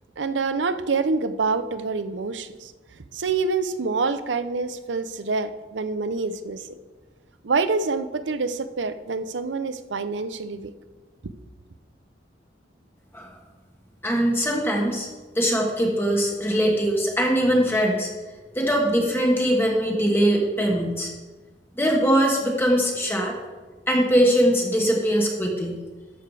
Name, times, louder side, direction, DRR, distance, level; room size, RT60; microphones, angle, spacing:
voice 1, 0.2-2.7 3.1-6.6 7.4-10.7 11.2-11.3, right 4 dB, 90° right, 12 dB, 0.6 m, -26 dB
voice 2, 14.0-15.1 15.3-18.1 18.5-21.1 21.8-23.3 23.9-25.8, equal, 15° left, 0 dB, 1.3 m, -21 dB
12.5 x 6.9 x 4.8 m, 1.3 s
head